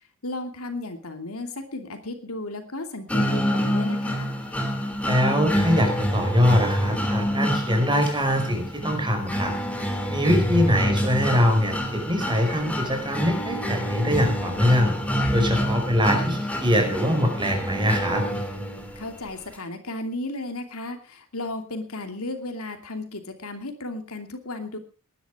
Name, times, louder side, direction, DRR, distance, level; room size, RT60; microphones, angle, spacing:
voice 1, 0.2-4.3 19.0-24.8, left 2 dB, 75° left, 6 dB, 2.8 m, -34 dB
sound 1, 3.1-19.1, equal, 5° left, 3.1 m, -27 dB
voice 2, 5.0-9.5 10.1-14.9 15.3-18.2, equal, 20° right, 4 dB, 5.2 m, -23 dB
19.0 x 11.5 x 4.9 m, 0.34 s
head